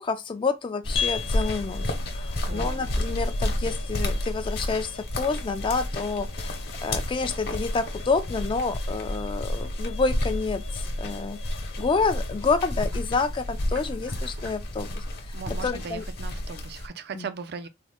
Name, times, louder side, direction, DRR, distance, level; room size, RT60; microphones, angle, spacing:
voice 1, 0.0-1.8 2.1-11.4 11.8-15.3 15.6-16.0 17.1-17.3, left 4 dB, 25° left, 0.3 m, -28 dB
sound 1, 0.8-16.9, left 1 dB, 55° left, 0.9 m, -31 dB
sound 2, 0.9-15.6, left 6 dB, 85° left, 0.7 m, -41 dB
voice 2, 2.5-2.9 15.3-17.7, right 5 dB, 55° right, 0.4 m, -38 dB
sound 3, 9.9-16.1, equal, 90° right, 1.0 m, -43 dB
3.6 x 2.1 x 3.4 m
head